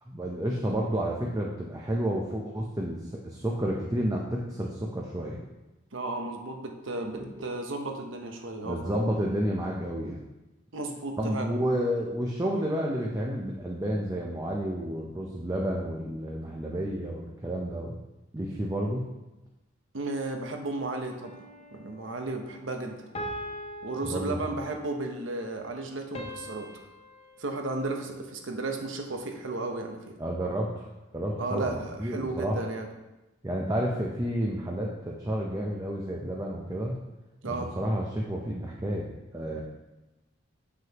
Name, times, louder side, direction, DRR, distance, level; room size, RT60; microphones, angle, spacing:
voice 1, 0.1-3.0 3.2-5.4 7.1-7.4 8.6-10.2 11.2-18.0 18.3-19.0 24.0-24.4 30.2-30.9 31.1-32.6 33.4-37.0 37.5-39.6, equal, 15° right, -2 dB, 0.6 m, -30 dB
voice 2, 5.9-8.9 10.7-11.5 19.9-21.4 21.7-23.0 23.8-26.7 27.4-30.2 31.4-32.9 37.4-37.7 39.5-39.6, right 2 dB, 70° right, 3 dB, 0.9 m, -34 dB
sound 1, 21.2-21.9 23.1-24.9 26.1-28.6, equal, 30° left, 0.7 m, -42 dB
7.5 x 6.1 x 2.9 m, 1.0 s
head